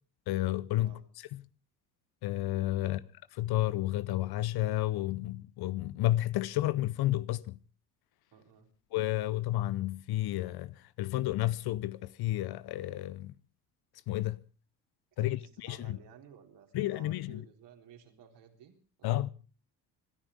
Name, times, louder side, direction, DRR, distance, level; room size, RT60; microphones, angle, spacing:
voice 1, 0.3-1.4 2.2-3.0 3.4-7.6 8.9-13.3 14.1-14.4 15.2-16.0 16.7-17.4 19.0-19.3, left 15 dB, 50° left, 0.8 m, -31 dB
voice 2, 8.3-8.7 15.2-18.7 19.0-19.2, right 8 dB, 55° right, 3.9 m, -55 dB
26.0 x 13.5 x 3.6 m
hypercardioid pair, 60°, 49 cm